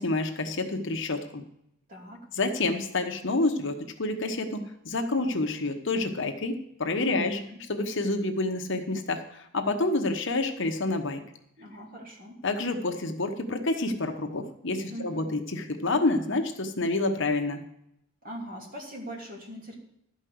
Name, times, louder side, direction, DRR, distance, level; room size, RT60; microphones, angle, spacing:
voice 1, 0.0-1.4 2.4-7.4 7.7-11.2 12.4-17.6, left 2 dB, 55° left, 5 dB, 1.1 m, -28 dB
voice 2, 1.9-2.3 7.1-7.6 11.6-12.4 14.9-15.4 18.2-19.8, equal, 40° right, 0 dB, 2.5 m, -41 dB
12.5 x 5.4 x 7.8 m, 0.78 s
head